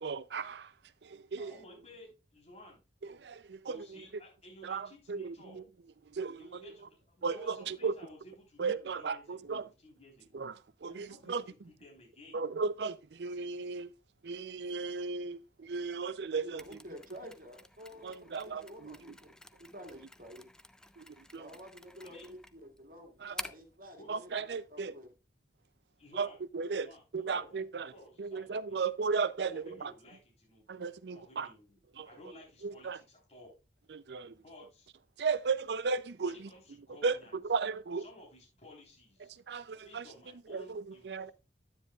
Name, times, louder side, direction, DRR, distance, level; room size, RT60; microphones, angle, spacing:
voice 1, 0.0-0.7 1.0-1.5 3.0-4.1 4.6-5.6 6.1-6.7 7.2-8.0 8.6-9.7 10.3-11.4 12.3-13.9 14.2-16.8 18.0-19.0 21.0-21.5 23.2-23.3 24.1-24.9 26.1-27.9 28.2-29.9 30.7-31.5 32.0-32.1 32.6-33.0 33.9-34.4 35.2-36.5 37.0-38.0 39.3-40.1 40.5-41.3, right 4 dB, 70° right, 0.5 m, -36 dB
voice 2, 1.4-2.8 3.6-5.6 6.4-9.6 9.8-10.5 10.9-12.4 22.0-22.3 24.0-24.1 26.0-26.4 26.8-28.9 29.4-30.8 31.1-31.8 32.1-33.5 34.2-34.9 36.2-37.3 38.0-39.4 39.8-41.3, left 1 dB, 35° left, 3.8 m, -55 dB
voice 3, 16.3-19.3 19.6-20.5 21.4-24.3 24.7-25.1, equal, 50° right, 2.1 m, -50 dB
Mechanisms, 16.6-23.8, left 1 dB, 5° left, 0.4 m, -50 dB
9.8 x 9.7 x 2.4 m
head